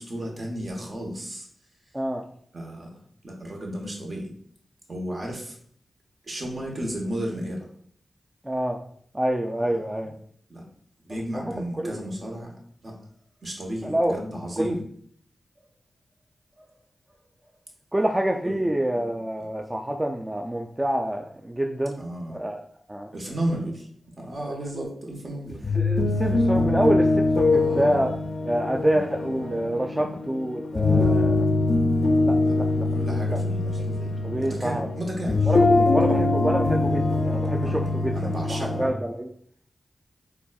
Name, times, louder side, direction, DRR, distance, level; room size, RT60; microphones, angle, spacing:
voice 1, 0.0-1.5 2.5-2.9 3.2-4.3 4.9-5.6 6.2-7.7 10.5-10.6 11.0-12.5 12.8-13.0 13.4-14.8 16.6-16.7 18.4-18.6 22.0-22.4 23.1-23.9 24.2-25.6 27.5-28.0 28.7-29.0 29.9-30.1 31.0-31.3 32.4-32.5 32.9-34.1 34.4-36.3 37.6-38.8, right 1 dB, 55° right, -1 dB, 1.0 m, -33 dB
voice 2, 8.4-8.8 9.1-10.1 11.3-12.0 13.8-14.2 14.6-14.8 17.9-22.0 22.3-22.6 22.9-23.1 24.5-24.8 25.7-28.1 28.5-31.5 32.3-32.9 33.3-33.4 33.9-34.0 34.2-34.9 35.5-35.6 35.9-38.1 38.5-39.3, right 1 dB, 20° right, 2 dB, 0.3 m, -27 dB
sound 1, 25.5-38.9, left 2 dB, 70° left, 0.4 m, -23 dB
4.0 x 2.3 x 2.3 m, 0.62 s
cardioid pair, 40°, 0 cm